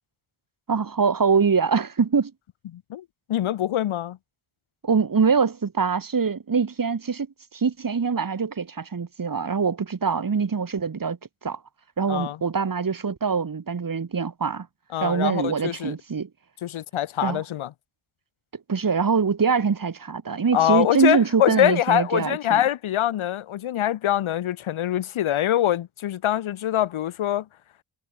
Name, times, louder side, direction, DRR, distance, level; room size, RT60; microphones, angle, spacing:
voice 1, 0.7-2.3 4.8-7.3 7.5-11.2 11.4-11.6 12.0-14.7 15.0-16.3 17.2-17.4 18.7-22.6, right 5 dB, 45° right, 5.4 m, -23 dB
voice 2, 2.7-4.2 12.1-12.4 14.9-15.9 16.6-17.7 20.5-27.5, left 12 dB, 90° left, 4.6 m, -24 dB
cardioid pair, 70°, 47 cm